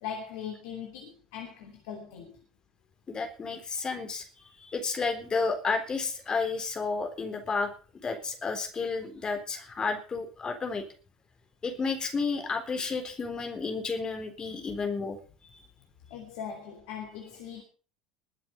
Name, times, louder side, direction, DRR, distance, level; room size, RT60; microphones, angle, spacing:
voice 1, 0.0-2.4 14.5-14.6 16.1-17.6, left 8 dB, 65° left, 3.0 m, -40 dB
voice 2, 3.1-4.2 4.6-7.7 8.0-10.8 11.6-15.2 15.4-15.6, left 4 dB, 25° left, 3.8 m, -31 dB
21.5 x 7.6 x 5.3 m
figure-of-eight pair, 70°, 3 cm